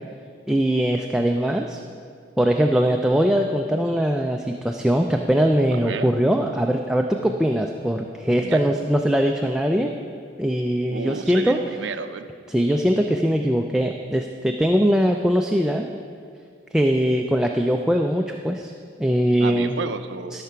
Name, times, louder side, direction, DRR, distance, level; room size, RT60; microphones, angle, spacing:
voice 1, 0.5-1.8 2.4-9.9 10.4-11.6 12.5-15.9 16.7-18.7 19.0-19.8 20.3-20.4, equal, 5° right, 2 dB, 0.3 m, -21 dB
voice 2, 5.7-6.1 8.4-8.7 10.9-12.3 19.4-20.4, right 4 dB, 65° right, 9 dB, 0.5 m, -31 dB
12.5 x 5.8 x 5.7 m, 2.2 s
head